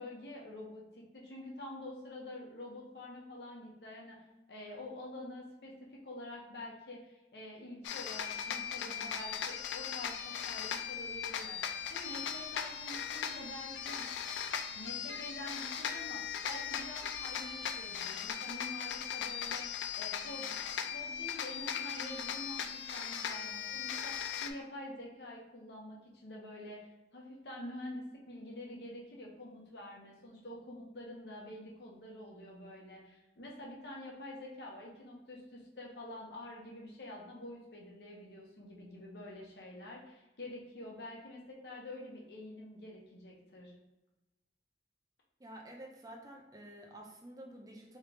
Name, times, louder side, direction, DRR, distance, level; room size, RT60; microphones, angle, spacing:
voice 1, 0.0-4.2 4.5-14.0 14.7-20.6 20.9-43.7, left 1 dB, 65° left, -2 dB, 0.9 m, -47 dB
sound 1, 7.8-24.5, left 8 dB, 85° left, 0.4 m, -38 dB
voice 2, 45.4-48.0, right 1 dB, 20° right, 0 dB, 0.5 m, -50 dB
3.7 x 3.2 x 3.3 m, 1.0 s
head